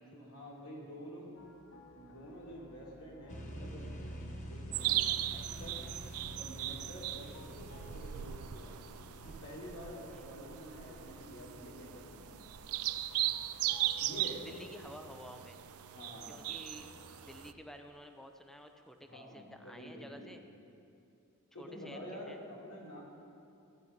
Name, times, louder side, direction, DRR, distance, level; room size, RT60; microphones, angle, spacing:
voice 1, 0.0-1.4 1.9-3.9 4.5-5.0 5.3-5.8 6.2-8.9 9.2-12.2 14.0-14.5 15.9-16.4 19.0-20.3 21.5-23.0, equal, 90° left, -4 dB, 3.4 m, -48 dB
sound 1, 1.4-17.5, left 3 dB, 65° left, 0.9 m, -59 dB
sound 2, 3.3-12.8, equal, 35° left, 1.2 m, -48 dB
sound 3, 4.7-17.5, right 14 dB, 70° right, 0.4 m, -38 dB
voice 2, 14.4-15.6 16.3-16.9 17.3-20.4 21.6-22.4, equal, ahead, 5 dB, 0.7 m, -51 dB
15.0 x 10.5 x 5.4 m, 2.6 s
head